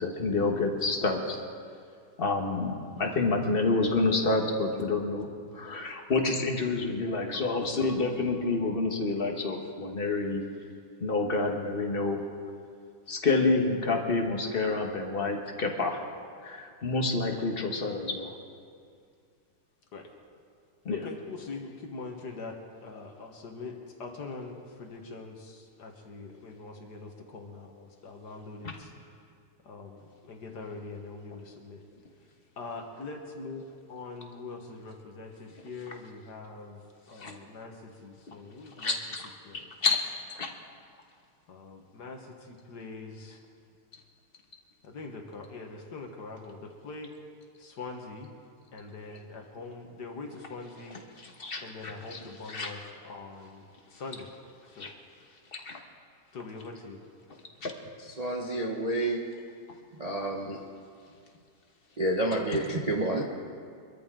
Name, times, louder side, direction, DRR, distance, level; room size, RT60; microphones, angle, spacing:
voice 1, 0.0-1.4 2.2-10.4 11.0-12.2 13.1-16.0 16.4-18.3 20.8-21.1 37.2-37.4 38.3-38.4 38.8-39.3 39.8-40.0 40.3-40.5 51.4-51.6 52.1-52.2 52.5-52.7 54.8-54.9 55.5-55.8 57.6-57.7, left 3 dB, 35° left, 2 dB, 1.4 m, -28 dB
voice 2, 20.9-28.9 29.6-31.8 32.6-33.6 33.9-36.8 37.1-39.0 39.4-39.7 41.5-43.4 44.8-47.1 47.6-48.3 48.7-51.0 51.6-53.7 53.9-54.3 54.7-55.0 56.3-57.0, left 3 dB, 60° left, 2 dB, 2.0 m, -43 dB
voice 3, 58.0-59.3 60.0-60.6 62.0-63.2, right 1 dB, 30° right, 0 dB, 0.8 m, -29 dB
23.5 x 13.5 x 3.8 m, 2.3 s
omnidirectional pair, 2.1 m